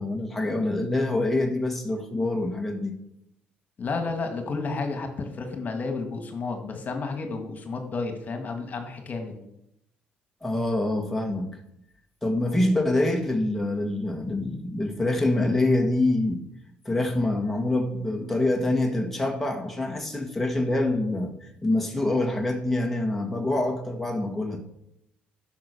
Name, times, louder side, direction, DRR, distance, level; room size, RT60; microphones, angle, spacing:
voice 1, 0.0-2.9 10.4-11.5 12.2-16.4 16.9-24.6, left 2 dB, 5° left, 1 dB, 1.8 m, -25 dB
voice 2, 3.8-9.4, left 3 dB, 40° left, 5 dB, 2.0 m, -31 dB
10.5 x 6.1 x 6.9 m, 0.79 s
cardioid pair, 90°, 4 cm